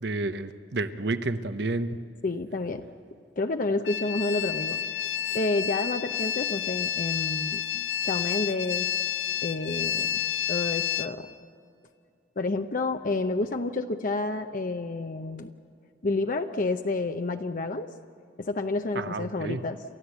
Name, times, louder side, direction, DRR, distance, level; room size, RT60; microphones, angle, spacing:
voice 1, 0.0-2.0 18.9-19.6, right 2 dB, 70° right, 11 dB, 0.9 m, -30 dB
voice 2, 2.2-2.9 3.4-4.8 5.3-7.6 8.0-8.9 9.4-10.2 10.5-11.3 12.4-15.5 16.0-17.9 18.4-19.8, left 2 dB, 50° left, 6 dB, 0.7 m, -29 dB
sound 1, 3.9-11.1, left 10 dB, 90° left, 0.7 m, -30 dB
29.5 x 13.5 x 8.1 m, 2.4 s
head